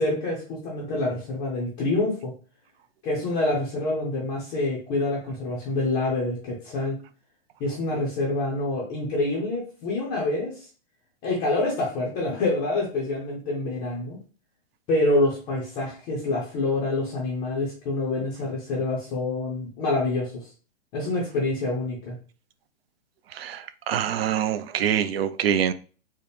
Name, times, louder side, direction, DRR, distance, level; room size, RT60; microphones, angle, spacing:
voice 1, 0.0-2.3 3.0-7.0 7.6-10.7 11.2-14.2 14.9-20.5 20.9-22.1, left 2 dB, 15° left, 0.5 m, -26 dB
voice 2, 23.4-25.7, right 9 dB, 65° right, 0.5 m, -25 dB
4.2 x 2.1 x 3.4 m
hypercardioid pair, 160°, 33 cm